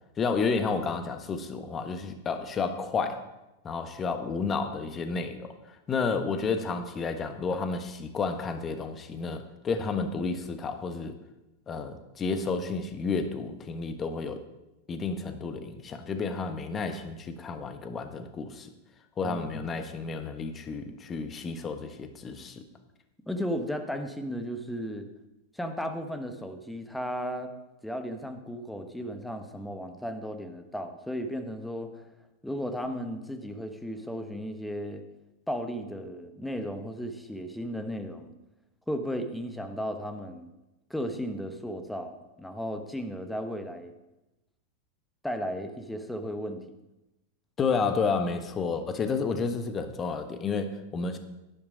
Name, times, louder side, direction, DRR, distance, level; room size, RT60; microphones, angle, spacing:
voice 1, 0.2-3.2 3.6-11.2 11.7-14.4 14.9-18.7 19.2-22.6 47.6-51.2, left 4 dB, 25° left, 8 dB, 1.3 m, -31 dB
voice 2, 19.2-19.8 23.3-25.1 25.5-27.5 27.8-32.0 32.4-35.0 35.5-38.3 38.9-40.5 40.9-43.9 45.2-46.6, equal, 5° left, 7 dB, 1.3 m, -35 dB
11.5 x 11.0 x 5.1 m, 0.97 s
figure-of-eight pair, 90°, 0 cm